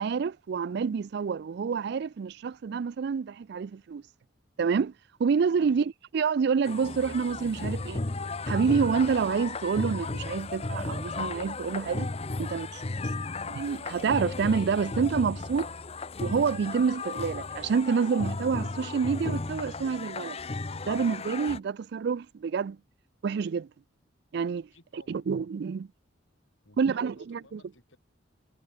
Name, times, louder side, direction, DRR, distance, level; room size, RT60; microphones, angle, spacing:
voice 1, 0.0-4.0 4.6-4.9 5.2-8.0 8.5-12.1 12.4-12.8 13.5-15.7 16.2-20.4 20.9-22.8 23.2-23.7 24.3-24.7 25.1-25.9 26.8-27.6, right 6 dB, 60° right, 0.3 m, -28 dB
sound 1, 6.6-21.6, left 3 dB, 30° left, 0.8 m, -35 dB
voice 2, 24.7-25.5 26.6-28.0, left 2 dB, 85° left, 3.1 m, -56 dB
head